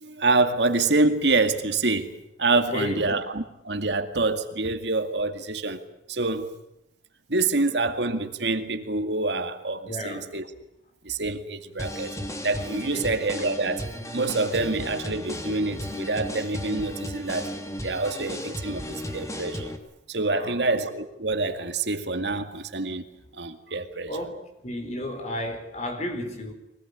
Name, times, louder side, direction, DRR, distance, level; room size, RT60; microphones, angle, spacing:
voice 1, 0.0-2.1 2.4-5.8 6.1-6.5 7.3-10.4 11.0-12.2 12.4-13.8 14.1-17.5 17.8-19.7 20.1-23.0 23.4-24.2, right 3 dB, 70° right, 2.2 m, -26 dB
voice 2, 2.7-3.1 9.9-10.3 12.9-13.1 20.3-20.6 24.1-24.4 24.6-26.5, left 1 dB, 40° left, 4.8 m, -32 dB
sound 1, 11.8-19.8, equal, 15° left, 2.8 m, -35 dB
24.0 x 19.0 x 9.9 m
head